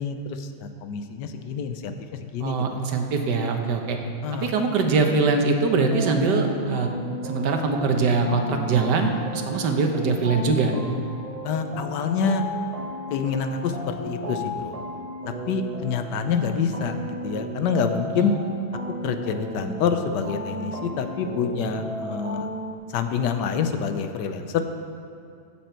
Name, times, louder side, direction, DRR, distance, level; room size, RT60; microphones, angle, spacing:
voice 1, 0.0-1.9 2.3-2.8 4.2-4.5 11.4-12.4 13.1-14.8 15.3-18.3 19.0-22.5 22.9-24.6, left 6 dB, 85° left, 7 dB, 1.3 m, -27 dB
voice 2, 2.4-4.0 4.4-6.9 7.2-10.7 18.1-18.4, right 4 dB, 80° right, 4 dB, 1.5 m, -22 dB
sound 1, 5.9-22.7, equal, 35° right, 0.5 m, -34 dB
14.0 x 7.5 x 4.4 m, 2.3 s
omnidirectional pair, 1.8 m